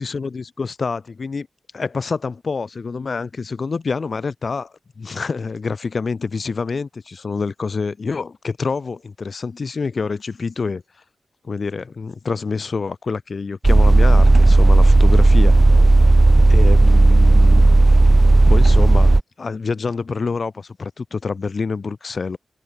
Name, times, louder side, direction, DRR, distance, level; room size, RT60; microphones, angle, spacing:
voice 1, 0.0-1.5 1.7-10.8 11.4-15.6 16.5-17.7 18.5-22.4, left 4 dB, 55° left, 5.8 m, -27 dB
sound 1, 13.6-19.2, right 2 dB, 30° right, 0.6 m, -12 dB
cardioid pair, 55°, 0 cm